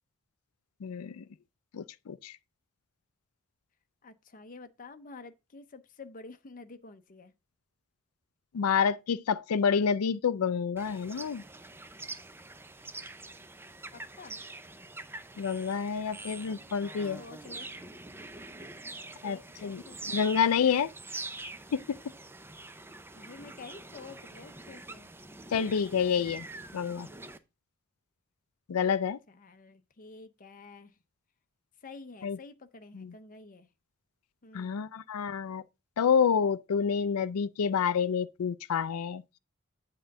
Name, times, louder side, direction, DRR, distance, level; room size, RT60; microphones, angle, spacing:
voice 1, 0.8-1.2 1.7-2.4 8.5-11.4 15.4-17.2 19.2-20.9 21.7-22.0 25.5-26.5 26.7-27.1 28.7-29.2 32.2-32.4 32.9-33.1 34.5-35.6 36.0-39.2, left 6 dB, 85° left, 0.4 m, -28 dB
voice 2, 4.0-7.3 13.9-14.4 17.2-17.7 19.2-20.1 23.1-25.1 29.3-31.0 31.8-33.7 34.4-34.8, left 3 dB, 40° left, 0.7 m, -49 dB
sound 1, 10.8-27.4, right 2 dB, 10° right, 0.5 m, -45 dB
8.1 x 3.8 x 6.5 m
head